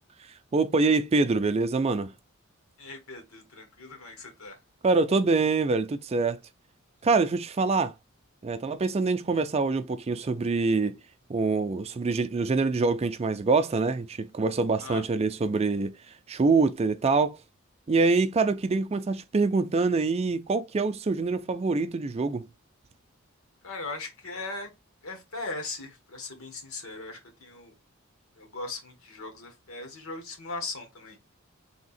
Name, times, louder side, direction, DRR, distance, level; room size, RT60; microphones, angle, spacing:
voice 1, 0.5-2.1 4.8-6.4 7.0-7.9 8.4-10.9 11.3-15.9 16.3-17.4 17.9-22.5, right 3 dB, 30° right, 0.4 m, -25 dB
voice 2, 2.8-4.6 14.8-15.1 23.6-24.7 25.0-27.8 28.3-31.4, left 3 dB, 80° left, 1.4 m, -39 dB
3.5 x 2.8 x 4.1 m
head